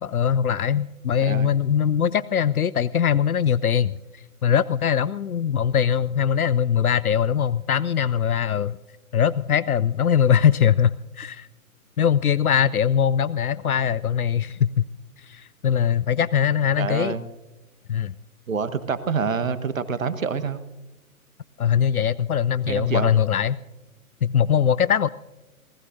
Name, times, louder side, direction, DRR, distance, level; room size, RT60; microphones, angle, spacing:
voice 1, 0.0-8.8 9.1-11.5 12.0-14.9 15.2-17.2 17.9-18.1 21.6-23.6 24.2-25.1, left 8 dB, 80° left, 19 dB, 0.6 m, -21 dB
voice 2, 16.8-17.2 18.5-20.6 22.7-23.1, right 5 dB, 65° right, 12 dB, 1.3 m, -27 dB
26.5 x 19.5 x 2.6 m, 1.1 s
figure-of-eight pair, 125°, 43 cm